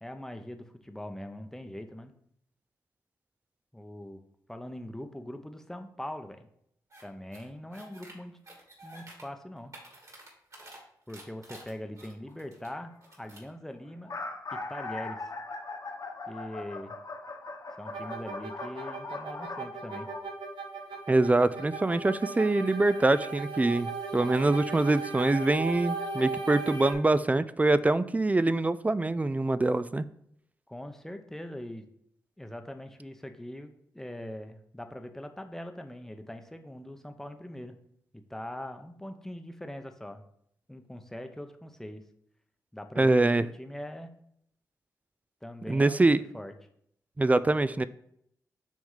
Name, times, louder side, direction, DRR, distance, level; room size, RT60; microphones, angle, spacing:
voice 1, 0.0-2.1 3.7-4.2 4.5-6.5 7.0-8.4 8.8-9.7 11.1-14.1 14.5-15.3 16.3-17.0 17.8-20.1 30.7-31.9 32.4-37.8 38.1-40.2 40.7-42.0 42.7-44.1 45.4-46.5, left 1 dB, 5° left, 7 dB, 0.7 m, -42 dB
sound 1, 6.9-7.0 7.3-8.1 8.4-9.2 9.6-10.8 11.1-12.7 13.0-13.5, right 1 dB, 45° right, 2.7 m, -50 dB
sound 2, 12.0-12.3 13.1-13.2 13.4-13.5 13.9-20.2, left 3 dB, 50° left, 1.1 m, -40 dB
sound 3, 17.9-26.9, right 4 dB, 90° right, 1.1 m, -37 dB
voice 2, 21.1-30.1 43.0-43.4 45.7-46.2 47.2-47.8, right 2 dB, 20° right, 15 dB, 0.3 m, -24 dB
6.1 x 3.5 x 5.6 m, 0.71 s
cardioid pair, 65°, 7 cm